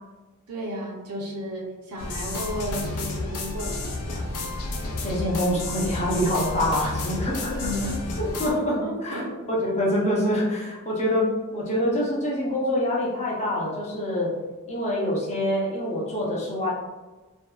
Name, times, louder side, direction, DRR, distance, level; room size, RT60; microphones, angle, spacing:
voice 1, 0.5-4.2 7.5-8.2 8.5-9.3, equal, 75° right, -1 dB, 0.6 m, -33 dB
sound 1, 2.0-8.5, left 2 dB, 85° left, 0.4 m, -31 dB
voice 2, 5.0-7.7 8.2-9.2 9.5-14.3 14.7-16.7, left 1 dB, 30° left, -4 dB, 0.5 m, -25 dB
2.6 x 2.2 x 2.3 m, 1.2 s
head